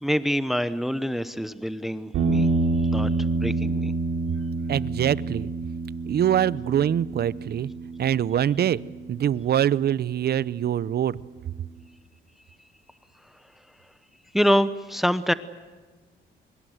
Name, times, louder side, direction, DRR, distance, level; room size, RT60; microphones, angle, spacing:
voice 1, 0.0-2.5 2.9-3.1 3.4-3.9 14.3-15.3, equal, ahead, 13 dB, 0.9 m, -25 dB
sound 1, 2.1-10.5, right 3 dB, 80° right, 3.2 m, -28 dB
voice 2, 4.7-5.5 6.1-7.7 8.0-8.8 9.1-11.2, right 10 dB, 55° right, 19 dB, 0.7 m, -24 dB
24.5 x 22.0 x 8.0 m, 1.3 s
cardioid pair, 90°, 20 cm